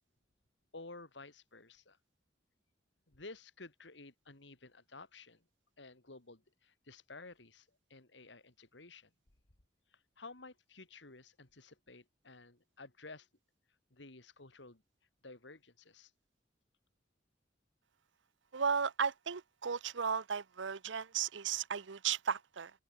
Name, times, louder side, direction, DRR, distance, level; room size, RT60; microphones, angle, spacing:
voice 1, 0.7-2.0 3.1-5.4 5.8-9.1 10.2-13.3 13.9-14.8 15.2-16.1, left 3 dB, 70° left, 2.8 m, -53 dB
voice 2, 18.5-22.7, right 6 dB, 85° right, 0.8 m, -35 dB
open air
head